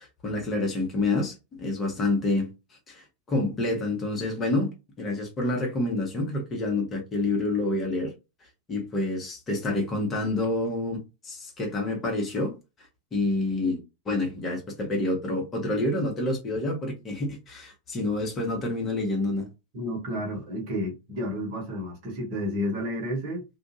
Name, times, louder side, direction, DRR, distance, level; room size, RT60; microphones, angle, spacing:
voice 1, 0.2-2.5 2.9-4.7 5.0-8.1 8.7-12.5 13.1-19.5, left 2 dB, 25° left, 1.0 m, -28 dB
voice 2, 19.7-23.4, equal, 45° right, 1.1 m, -31 dB
2.4 x 2.3 x 2.8 m
figure-of-eight pair, 90°, 0 cm